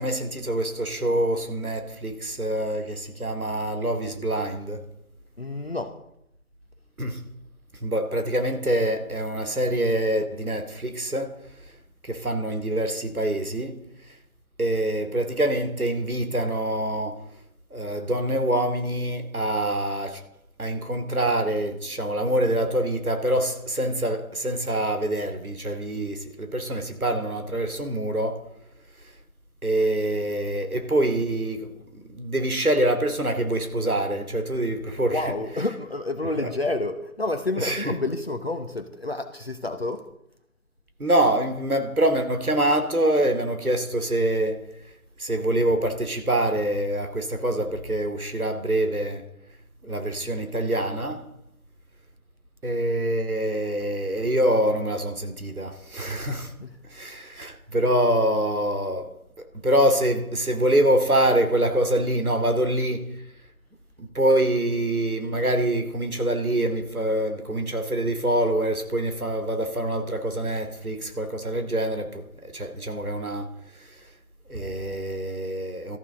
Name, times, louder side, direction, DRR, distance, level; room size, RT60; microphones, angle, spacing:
voice 1, 0.0-4.8 7.0-7.2 7.8-11.4 12.0-13.8 14.6-17.2 17.7-20.2 20.6-28.4 29.6-35.2 36.4-36.5 37.6-37.9 41.0-44.6 45.2-49.3 49.8-51.3 52.6-56.5 56.9-59.1 59.6-63.1 64.0-73.5 73.8-73.9 74.5-76.0, right 1 dB, 85° right, 2.5 m, -25 dB
voice 2, 5.4-6.0 35.0-40.0 56.6-56.8, left 2 dB, 45° left, 1.0 m, -29 dB
19.5 x 14.0 x 3.8 m
figure-of-eight pair, 170°, 43 cm